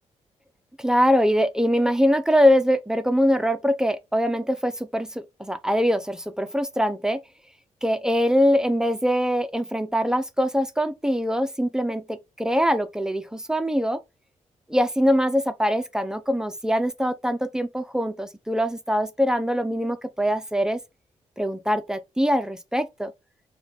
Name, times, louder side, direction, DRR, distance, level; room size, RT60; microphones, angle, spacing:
voice 1, 0.8-7.2 7.8-14.0 14.7-20.8 21.4-23.1, equal, 5° right, 0.4 m, -23 dB
4.5 x 2.2 x 3.8 m
wide cardioid pair, 140°, 12 cm